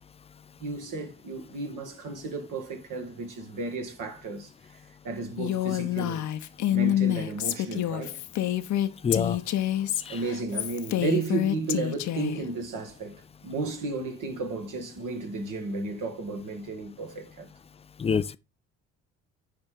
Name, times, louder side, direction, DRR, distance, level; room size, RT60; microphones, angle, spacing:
voice 1, 0.6-4.5 5.0-6.2 6.7-8.2 10.1-17.5, right 3 dB, 55° right, 1.9 m, -33 dB
Female speech woman speaking, 5.4-12.4, left 12 dB, 50° left, 0.8 m, -27 dB
voice 2, 9.0-9.4 10.1-10.2 18.0-18.4, left 6 dB, 15° left, 0.4 m, -26 dB
10.0 x 3.5 x 3.8 m
hypercardioid pair, 50°, 38 cm